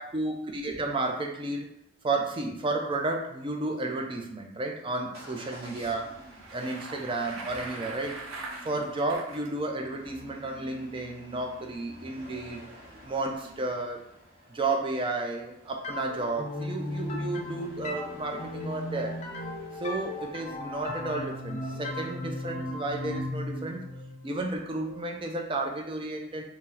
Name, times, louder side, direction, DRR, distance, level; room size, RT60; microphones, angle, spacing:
voice 1, 0.0-1.7 2.0-6.2 6.5-8.2 8.6-12.7 13.0-14.0 14.5-19.2 19.7-23.8 24.2-26.4, right 2 dB, 25° right, 2 dB, 0.4 m, -32 dB
Motor vehicle (road) / Engine starting / Accelerating revving vroom, 5.1-20.5, right 1 dB, 50° right, 1.1 m, -51 dB
Bicycle, 6.2-9.5, right 3 dB, 85° right, 0.6 m, -41 dB
sound 1, 15.8-25.4, left 1 dB, 35° left, 0.5 m, -36 dB
2.8 x 2.0 x 3.7 m, 0.74 s
head